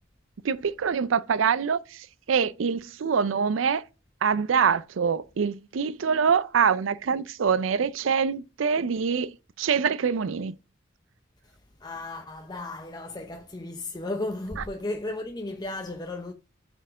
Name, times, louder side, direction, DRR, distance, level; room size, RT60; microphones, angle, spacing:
voice 1, 0.4-1.8 2.3-3.8 4.2-9.3 9.6-10.5, right 6 dB, 90° right, 0.5 m, -24 dB
voice 2, 11.8-16.3, left 2 dB, 20° left, 0.6 m, -34 dB
7.9 x 4.5 x 6.2 m
head